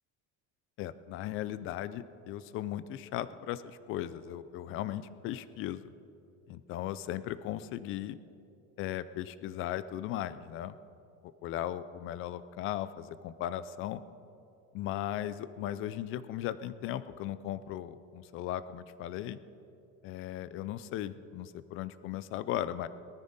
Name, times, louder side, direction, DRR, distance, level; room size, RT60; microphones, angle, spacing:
voice 1, 0.8-5.8 6.5-8.2 8.8-10.8 11.4-14.0 14.7-19.4 20.0-22.9, left 12 dB, 40° left, 15 dB, 0.4 m, -37 dB
19.0 x 13.5 x 4.0 m, 2.7 s
cardioid pair, 175°, 35 cm